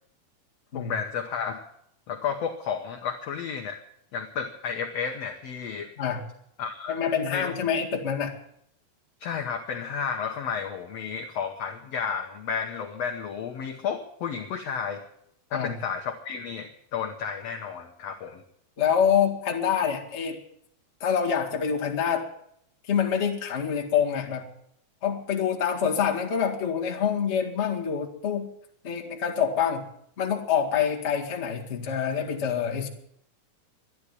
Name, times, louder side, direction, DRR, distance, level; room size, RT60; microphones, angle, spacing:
voice 1, 0.7-1.7 2.1-3.8 4.1-5.9 6.6-6.9 7.3-7.5 9.2-15.0 15.5-18.4, left 6 dB, 70° left, 3 dB, 1.5 m, -32 dB
voice 2, 6.9-8.4 15.5-15.7 18.8-20.4 21.0-22.3 22.9-24.5 25.0-28.5 28.8-29.8 30.2-32.9, left 7 dB, 30° left, 0 dB, 1.2 m, -26 dB
12.5 x 11.0 x 9.9 m, 0.74 s
omnidirectional pair, 4.3 m